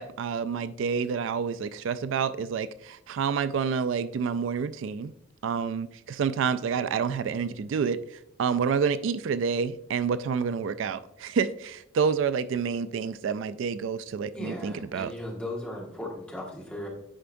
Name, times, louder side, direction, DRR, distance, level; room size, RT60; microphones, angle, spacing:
voice 1, 0.0-5.1 5.4-15.1, right 6 dB, 75° right, 14 dB, 0.3 m, -28 dB
voice 2, 14.3-16.9, left 1 dB, 5° left, -4 dB, 1.6 m, -37 dB
10.0 x 4.6 x 2.6 m, 0.78 s
head